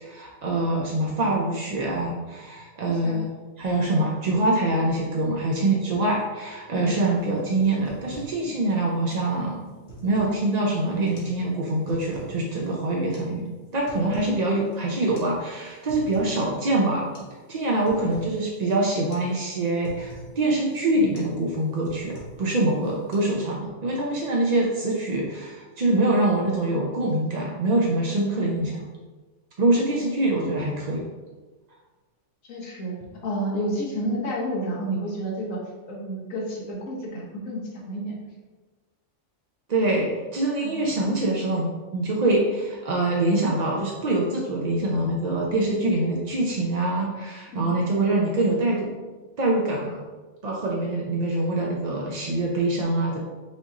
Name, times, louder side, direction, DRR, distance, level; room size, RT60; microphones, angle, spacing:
voice 1, 0.0-3.3 3.6-9.7 10.0-17.1 17.5-28.9 29.6-31.1 39.7-48.9 49.4-50.0 50.4-53.2, right 2 dB, 60° right, -2 dB, 0.4 m, -24 dB
sound 1, 7.2-7.3 7.6-8.4 8.7-8.8 9.1-9.3 9.7-10.4 11.0-11.4 11.7-12.3 13.1-13.3 13.7-14.4 14.7-14.8 15.2-15.3 15.6-16.4 16.7-16.8 17.1-17.4 17.6-18.3 18.7-18.9 19.1-19.3 19.6-20.3 20.7-20.9 21.1-21.4 21.7-22.5 22.8-23.2, right 2 dB, 90° left, 1.6 m, -44 dB
voice 2, 32.4-32.9 33.2-35.6 35.9-38.1 40.6-40.7 47.5-47.7, equal, 70° left, -3 dB, 1.4 m, -30 dB
5.3 x 2.5 x 4.0 m, 1.3 s
omnidirectional pair, 1.4 m